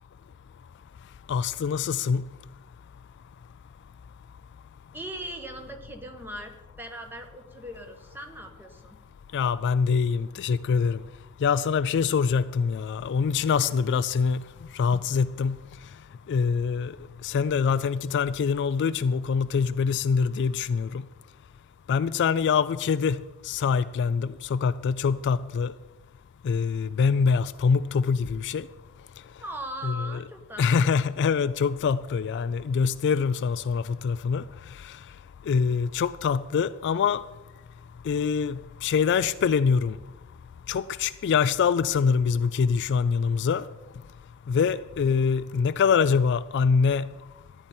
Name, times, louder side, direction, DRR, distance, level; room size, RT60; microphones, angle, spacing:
voice 1, 1.3-2.2 9.3-11.0 11.4-14.4 14.7-15.6 16.3-16.9 17.2-21.0 21.9-25.7 26.4-28.7 29.8-30.2 30.6-34.4 34.8-34.9 35.5-37.2 38.1-40.0 40.7-43.6 44.5-47.1, left 6 dB, 55° left, 0.3 m, -24 dB
voice 2, 4.9-9.0 29.4-30.9, right 1 dB, 10° right, 1.2 m, -39 dB
14.0 x 10.0 x 4.3 m
head